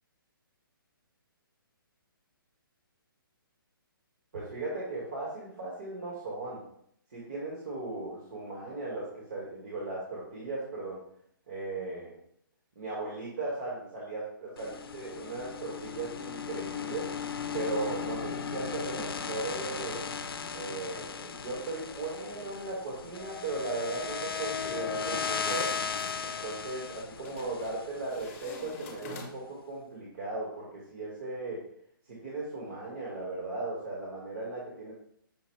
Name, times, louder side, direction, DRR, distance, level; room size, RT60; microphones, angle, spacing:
voice 1, 4.3-6.6 7.1-11.0 11.5-12.1 12.7-17.1 17.5-20.1 20.5-25.8 26.2-31.6 32.1-34.9, right 2 dB, 45° right, -5 dB, 1.2 m, -37 dB
sound 1, 14.6-28.7, left 6 dB, 85° left, 0.5 m, -37 dB
sound 2, 25.0-26.2 27.2-27.8 28.1-29.6, left 3 dB, 35° left, 0.8 m, -46 dB
5.7 x 2.0 x 4.2 m, 0.68 s
hypercardioid pair, 170°, 12 cm